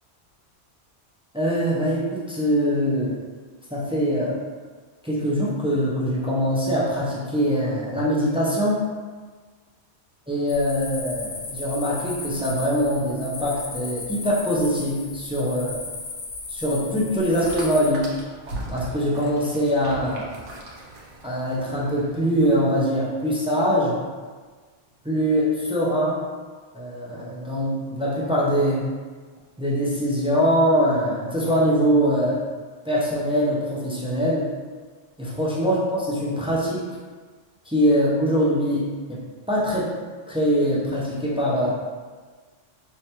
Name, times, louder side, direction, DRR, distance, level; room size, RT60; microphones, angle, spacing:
voice 1, 1.3-3.2 3.7-4.4 5.0-8.8 10.3-15.8 16.5-18.1 18.7-20.3 21.2-24.0 25.0-26.2 26.7-28.8 29.6-32.4 32.8-34.5 35.2-36.8 37.7-39.2 39.5-39.9 40.3-41.8, equal, 10° right, -7 dB, 0.3 m, -23 dB
sound 1, 10.5-17.9, left 3 dB, 85° left, 1.0 m, -36 dB
sound 2, 17.3-22.5, right 1 dB, 70° right, 1.0 m, -39 dB
3.3 x 3.0 x 2.9 m, 1.4 s
omnidirectional pair, 1.2 m